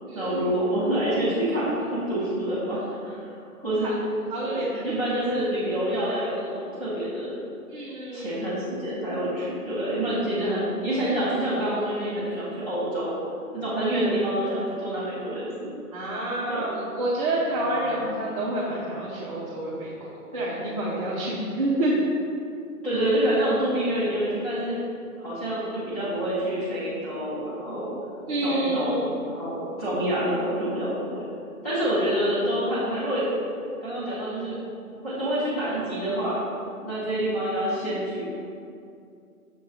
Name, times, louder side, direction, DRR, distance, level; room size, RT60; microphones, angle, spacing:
voice 1, 0.1-4.0 4.4-7.4 8.1-13.2 13.5-15.7 16.5-16.6 17.6-17.9 22.8-24.8 25.2-27.9 28.4-31.1 31.6-33.3 33.8-34.6 35.0-36.4 36.8-38.3, right 1 dB, ahead, -16 dB, 0.5 m, -27 dB
voice 2, 4.3-4.9 7.7-8.5 15.9-22.0 28.3-29.0, right 1 dB, 25° right, -8 dB, 0.8 m, -28 dB
6.9 x 3.0 x 5.3 m, 2.5 s
figure-of-eight pair, 135°, 44 cm